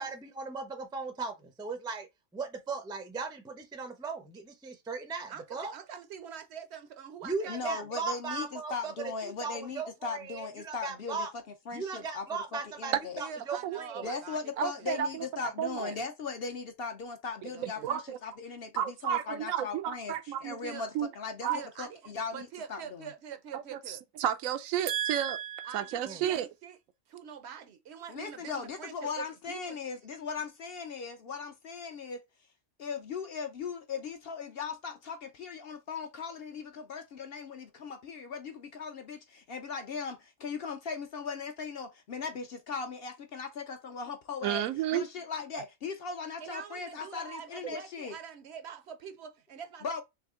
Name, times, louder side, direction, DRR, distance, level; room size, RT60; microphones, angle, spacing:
voice 1, 0.0-2.1 2.3-5.7 7.2-8.9 9.2-11.3 11.7-12.9 13.5-14.2 26.1-26.2, right 4 dB, 5° right, 0.3 m, -37 dB
voice 2, 5.3-7.9 13.2-14.9 15.2-15.5 15.8-16.0 17.5-17.9 20.6-20.9 21.5-24.0 25.6-26.8 27.1-29.8 46.4-50.0, right 7 dB, 65° right, 0.8 m, -45 dB
voice 3, 7.5-13.2 14.0-20.9 21.1-23.1 28.1-32.2 32.8-44.6 44.9-48.2 49.8-50.0, left 5 dB, 60° left, 0.7 m, -38 dB
voice 4, 13.6-14.1 14.6-15.9 17.6-18.2 18.8-20.6 20.9-21.1 21.4-21.6 23.5-26.5 44.4-45.1, right 10 dB, 85° right, 1.0 m, -32 dB
3.4 x 3.2 x 3.6 m
omnidirectional pair, 1.4 m